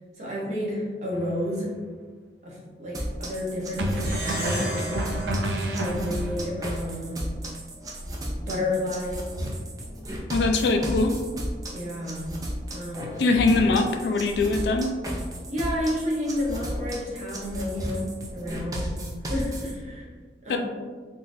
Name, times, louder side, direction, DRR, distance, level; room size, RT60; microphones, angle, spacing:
voice 1, 0.2-1.8 2.4-4.9 5.8-7.3 8.4-9.2 11.7-12.3 12.7-13.2 15.5-18.9 19.3-20.1 20.4-20.6, left 1 dB, 40° right, -5 dB, 0.8 m, -31 dB
sound 1, 1.1-1.4 3.8-6.4, right 1 dB, 90° right, 0.4 m, -29 dB
sound 2, 2.9-19.7, equal, 20° right, 0.4 m, -34 dB
Plucked string instrument, 3.9-6.7, right 1 dB, 60° right, 1.4 m, -35 dB
voice 2, 10.3-11.1 13.2-14.9 20.5-20.6, left 3 dB, 75° left, 5 dB, 0.3 m, -22 dB
3.7 x 2.5 x 2.6 m, 1.5 s
head